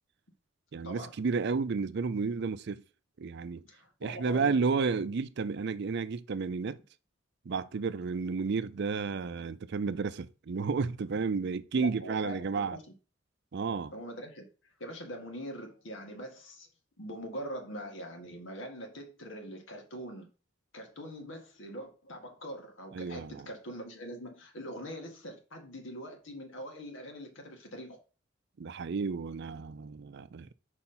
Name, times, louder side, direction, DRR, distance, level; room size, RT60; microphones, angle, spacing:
voice 1, 0.7-2.8 3.2-3.6 4.0-6.8 7.5-12.8 13.5-13.9 22.9-23.5 28.6-30.5, right 4 dB, 60° right, 0.5 m, -32 dB
voice 2, 3.7-4.6 11.8-12.8 13.9-14.4 14.8-16.7 17.0-20.3 20.7-28.0, equal, 80° left, 1.8 m, -43 dB
4.8 x 4.3 x 5.5 m
head